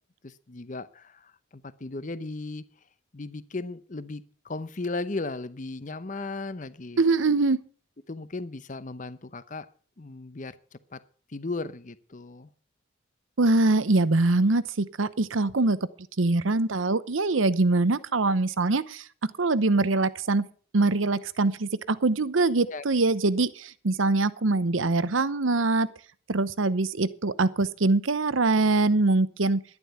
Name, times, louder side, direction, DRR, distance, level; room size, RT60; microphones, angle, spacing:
voice 1, 0.2-2.7 3.1-7.0 8.1-9.7 10.0-11.0 11.3-12.5 22.6-22.8, left 3 dB, 40° left, 15 dB, 0.8 m, -36 dB
voice 2, 7.0-7.6 13.4-15.9 16.2-19.1 19.4-20.5 20.7-25.9 26.3-29.6, right 3 dB, 90° right, 16 dB, 0.8 m, -23 dB
11.5 x 11.0 x 5.7 m, 0.42 s
head